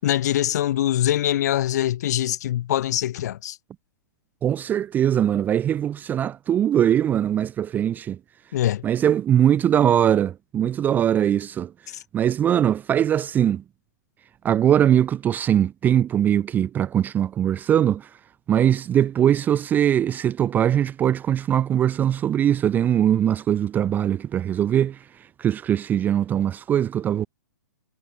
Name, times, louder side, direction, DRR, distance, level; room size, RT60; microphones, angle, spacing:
voice 1, 0.0-3.6 8.5-8.8 11.9-12.0, left 12 dB, 50° left, 6.8 m, -23 dB
voice 2, 4.4-8.2 8.8-11.7 12.1-13.6 14.4-18.1 18.5-25.0 25.4-27.3, right 10 dB, 15° right, 0.5 m, -21 dB
figure-of-eight pair, 115°, 11 cm